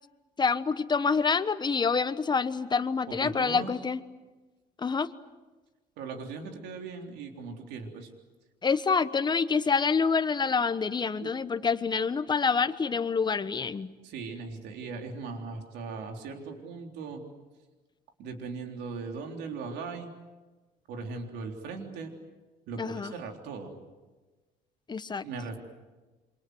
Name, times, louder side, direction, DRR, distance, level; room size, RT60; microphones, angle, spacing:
voice 1, 0.4-4.0 4.8-5.1 8.6-13.9 22.8-23.1 24.9-25.2, left 5 dB, 25° left, 12 dB, 1.2 m, -27 dB
voice 2, 3.1-3.7 6.0-8.1 11.2-11.3 14.0-17.2 18.2-20.1 20.9-22.1 22.7-23.8 25.2-25.6, right 4 dB, 85° right, 3 dB, 3.8 m, -39 dB
28.0 x 25.5 x 8.0 m, 1.2 s
cardioid pair, 110°, 17 cm